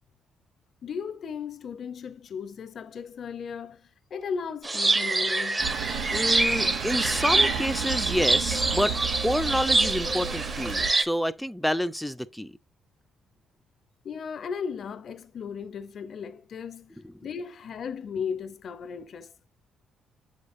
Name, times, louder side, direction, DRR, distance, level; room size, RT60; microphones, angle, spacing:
voice 1, 0.8-5.7 14.0-19.3, left 6 dB, 55° left, 0.7 m, -36 dB
sound 1, 4.6-11.0, right 2 dB, 20° right, 0.9 m, -26 dB
sound 2, 5.6-10.9, right 8 dB, 90° right, 0.8 m, -33 dB
voice 2, 6.1-12.5 17.0-17.1, equal, ahead, 0.5 m, -28 dB
7.7 x 5.2 x 2.6 m
cardioid pair, 90°, 0 cm